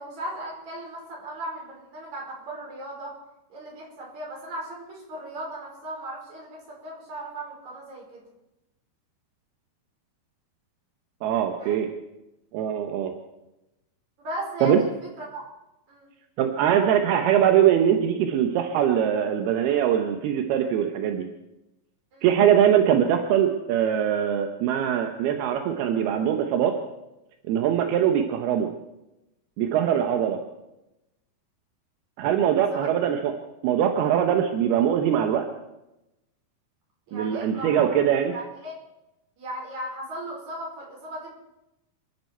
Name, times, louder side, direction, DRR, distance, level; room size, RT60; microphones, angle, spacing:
voice 1, 0.0-3.1 3.5-8.2 11.6-11.8 14.2-14.9 15.2-15.4 15.9-16.1 22.1-22.3 32.7-32.9 37.1-37.9 38.3-38.8 39.4-41.3, right 1 dB, 45° right, -3 dB, 6.2 m, -37 dB
voice 2, 11.2-11.9 12.5-13.1 14.6-14.8 16.4-21.3 22.2-26.8 27.5-28.7 29.6-30.4 32.2-33.3 33.6-35.5 37.1-38.3, right 9 dB, 80° right, 4 dB, 3.0 m, -22 dB
26.5 x 11.5 x 4.6 m, 0.93 s
omnidirectional pair, 4.5 m